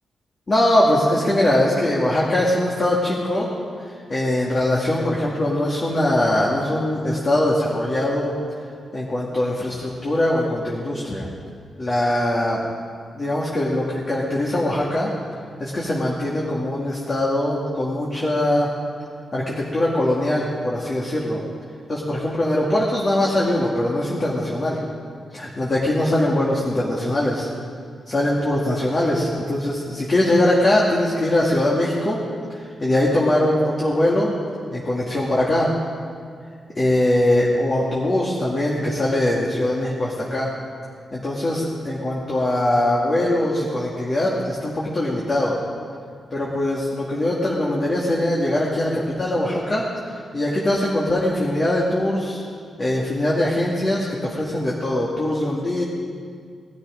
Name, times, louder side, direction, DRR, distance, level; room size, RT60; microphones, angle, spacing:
voice 1, 0.5-3.5 3.9-8.3 8.9-11.3 11.8-12.6 13.1-15.1 15.6-18.7 19.3-21.4 21.9-24.8 25.3-27.5 28.1-32.2 32.5-34.4 34.7-35.7 36.7-40.5 41.1-45.6 46.3-49.9 50.3-52.4 52.8-55.8, left 1 dB, 30° left, -5 dB, 2.2 m, -21 dB
19.5 x 13.5 x 5.1 m, 2.1 s
wide cardioid pair, 145°, 0 cm